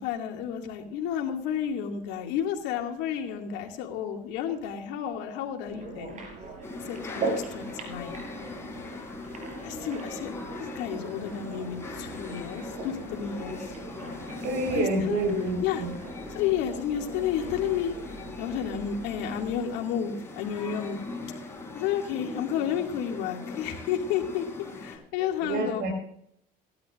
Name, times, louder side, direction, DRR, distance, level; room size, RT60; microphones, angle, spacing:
voice 1, 0.0-6.2 6.8-8.1 9.6-10.3 10.6-13.7 14.7-15.8 16.3-17.9 18.4-21.0 21.7-24.4 24.8-25.8, left 9 dB, 85° left, 2 dB, 2.4 m, -31 dB
sound 1, 5.6-19.6, right 3 dB, 45° right, 5.2 m, -40 dB
sound 2, 6.6-25.0, left 3 dB, 15° left, 4.2 m, -40 dB
voice 2, 14.4-15.9 25.4-25.9, right 2 dB, 70° right, 5 dB, 4.5 m, -28 dB
18.0 x 12.5 x 2.6 m, 0.69 s
cardioid pair, 120°, 17 cm